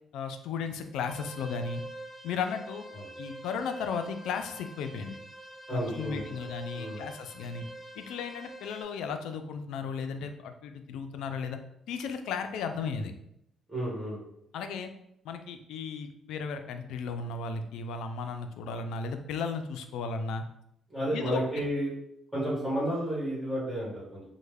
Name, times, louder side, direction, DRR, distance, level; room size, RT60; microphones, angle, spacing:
voice 1, 0.1-1.8 2.2-2.8 3.2-5.2 5.7-7.6 8.0-11.6 11.9-13.1 14.5-14.9 15.3-20.4 21.1-21.7, left 5 dB, 90° left, 7 dB, 0.3 m, -35 dB
sound 1, 1.0-8.8, right 1 dB, 25° right, 0.8 m, -45 dB
voice 2, 5.7-6.4 6.7-7.0 13.7-14.2 20.9-21.9 22.3-24.2, right 1 dB, 5° right, -8 dB, 1.5 m, -32 dB
3.1 x 2.1 x 3.4 m, 0.76 s
cardioid pair, 90°, 0 cm